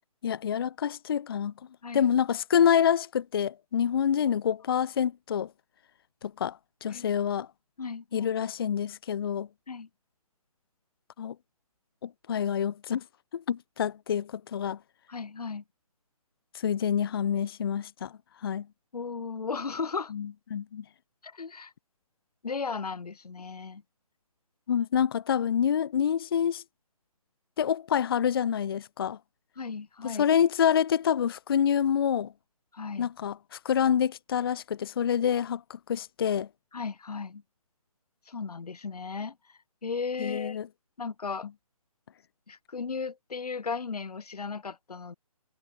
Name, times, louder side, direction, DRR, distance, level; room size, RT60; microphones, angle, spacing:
voice 1, 0.2-1.5 1.9-5.5 6.2-7.5 8.1-9.5 11.2-11.3 12.0-13.0 13.3-14.8 16.6-18.1 18.4-18.6 20.2-20.3 20.5-20.8 24.7-26.6 27.6-29.2 30.2-32.3 33.0-33.3 33.6-35.6 35.9-36.5 40.2-40.7, left 8 dB, 40° left, 0.4 m, -27 dB
voice 2, 7.8-8.3 9.7-9.9 15.1-15.6 18.9-20.1 21.2-21.7 22.4-23.8 29.6-30.2 32.7-33.1 36.7-37.4 38.3-40.6 41.0-41.5 42.5-45.1, left 5 dB, 85° left, 0.8 m, -36 dB
figure-of-eight pair, 155°, 19 cm